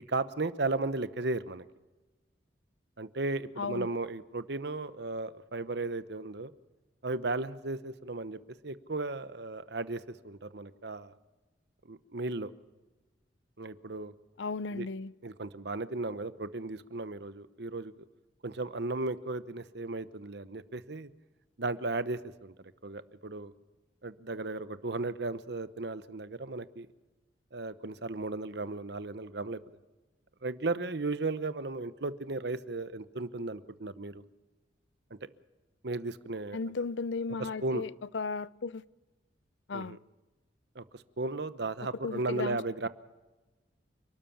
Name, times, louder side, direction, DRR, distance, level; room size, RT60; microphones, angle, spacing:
voice 1, 0.1-1.6 3.0-6.5 7.0-8.4 8.6-11.1 11.9-12.5 13.6-14.1 14.7-14.9 15.2-17.9 18.4-21.1 21.6-22.5 22.8-23.5 24.0-26.9 27.5-29.6 30.4-34.2 35.8-36.6 37.4-37.8 39.7-40.0 40.7-42.9, right 2 dB, 60° right, 1.0 m, -35 dB
voice 2, 3.6-3.9 14.4-15.1 36.5-38.8 39.7-40.0 42.0-42.6, left 4 dB, 75° left, 0.6 m, -35 dB
29.0 x 13.0 x 7.1 m
head